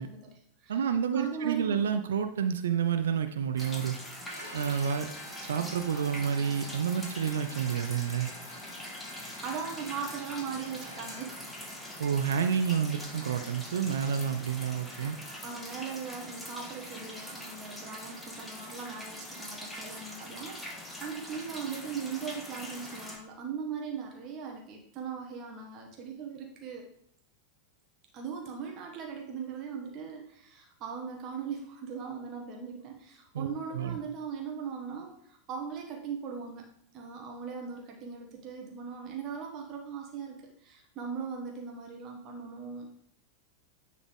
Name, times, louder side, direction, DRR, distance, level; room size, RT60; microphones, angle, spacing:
voice 1, 0.0-0.8 1.1-1.8 9.4-11.3 15.4-26.8 28.1-42.9, right 6 dB, 35° right, 1 dB, 1.3 m, -39 dB
voice 2, 0.7-4.0 4.5-5.1 5.4-8.3 12.0-15.2 33.3-34.0, right 7 dB, 65° right, 9 dB, 0.5 m, -29 dB
sound 1, 3.6-23.2, left 1 dB, 5° left, 1.7 m, -43 dB
Bowed string instrument, 4.3-11.3, equal, 85° right, 1.7 m, -49 dB
10.0 x 3.9 x 3.6 m, 0.70 s
figure-of-eight pair, 90°, 0 cm